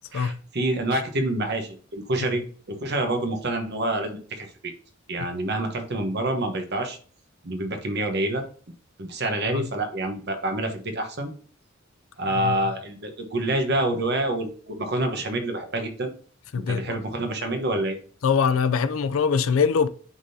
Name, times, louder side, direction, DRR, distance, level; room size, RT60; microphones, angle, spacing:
voice 1, 0.1-2.4 2.7-4.5 5.1-7.0 7.4-8.4 9.0-11.3 12.2-16.1 16.7-18.0, right 1 dB, 55° right, 1.1 m, -27 dB
voice 2, 16.5-17.0 18.2-19.9, left 6 dB, 85° left, 0.4 m, -23 dB
9.8 x 3.7 x 2.8 m
head